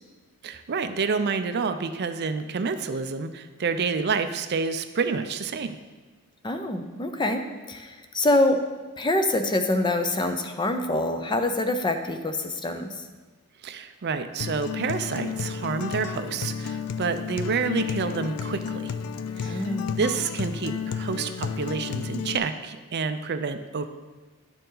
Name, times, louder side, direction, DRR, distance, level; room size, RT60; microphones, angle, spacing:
voice 1, 0.4-5.8 13.6-18.9 19.4-23.9, right 5 dB, 50° right, 9 dB, 0.5 m, -29 dB
voice 2, 6.4-8.6 9.0-13.0 19.4-20.0, left 1 dB, 20° left, 6 dB, 0.6 m, -25 dB
Acoustic guitar, 14.4-22.4, left 6 dB, 80° left, 0.4 m, -32 dB
11.0 x 6.7 x 3.9 m, 1.3 s
head